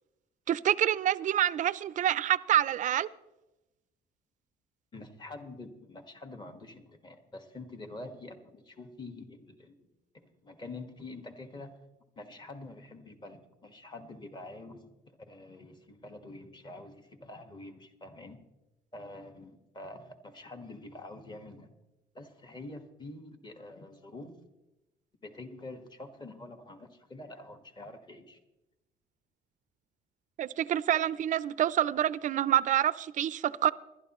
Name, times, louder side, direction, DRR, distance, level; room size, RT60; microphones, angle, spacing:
voice 1, 0.5-3.1 30.4-33.7, right 11 dB, 50° right, 0.4 m, -27 dB
voice 2, 4.9-9.9 10.1-11.7 12.2-14.9 15.2-18.4 18.9-21.7 22.1-24.3 25.2-28.4, left 2 dB, 25° left, 1.5 m, -46 dB
21.0 x 12.0 x 3.0 m
cardioid pair, 110°, 17 cm